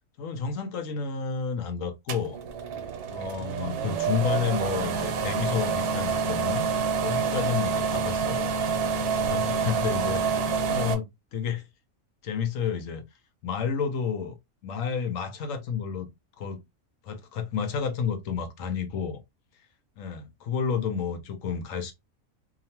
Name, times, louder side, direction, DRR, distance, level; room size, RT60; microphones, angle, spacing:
voice 1, 0.2-2.4 3.1-6.6 7.0-8.5 9.1-11.7 12.2-13.0 13.4-14.4 14.6-16.1 16.4-16.6 17.0-19.2 20.0-21.9, left 6 dB, 65° left, 0.9 m, -30 dB
sound 1, 2.1-10.9, right 6 dB, 90° right, 1.1 m, -27 dB
2.8 x 2.4 x 2.7 m
omnidirectional pair, 1.6 m